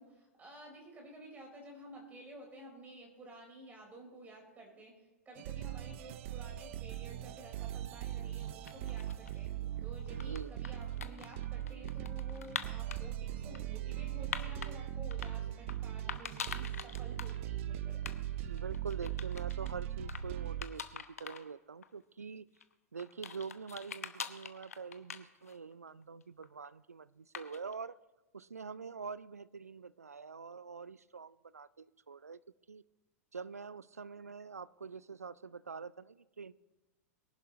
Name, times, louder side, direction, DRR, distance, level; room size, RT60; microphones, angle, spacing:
voice 1, 0.0-9.5 9.8-18.0, right 1 dB, 20° right, 0 dB, 4.8 m, -52 dB
sound 1, 5.4-20.6, right 12 dB, 55° right, 0.7 m, -40 dB
sound 2, 8.4-9.4 10.0-13.0 13.5-14.7 15.1-15.8 16.1-17.4 17.6-17.7 18.0-18.2 18.4-19.7 20.1-20.2 20.6-21.4 21.8-21.9 22.6-25.7 26.0-26.7 27.3-27.7, left 7 dB, 75° left, 0.9 m, -44 dB
voice 2, 10.2-10.5 18.3-22.5 22.9-28.0 28.3-32.4 32.7-32.8 33.3-36.5, right 5 dB, 85° right, 19 dB, 0.4 m, -45 dB
23.5 x 11.0 x 3.1 m, 1.1 s
figure-of-eight pair, 95°, 8 cm